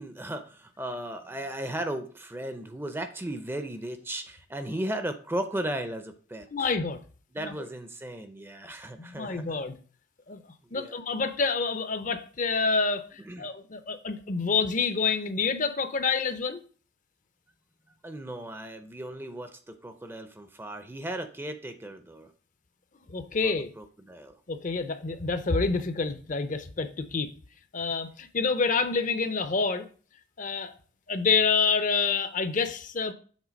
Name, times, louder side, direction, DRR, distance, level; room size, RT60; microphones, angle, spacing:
voice 1, 0.0-6.7 7.3-9.6 10.6-11.0 13.2-13.5 18.0-22.3 23.4-24.4, right 1 dB, 10° right, 0.5 m, -36 dB
voice 2, 6.5-7.0 7.4-7.5 9.0-9.8 10.3-10.4 10.7-16.6 23.1-23.7 24.5-27.3 27.7-29.9 30.4-30.7 31.1-33.1, left 4 dB, 40° left, 0.6 m, -27 dB
7.3 x 3.8 x 5.1 m
head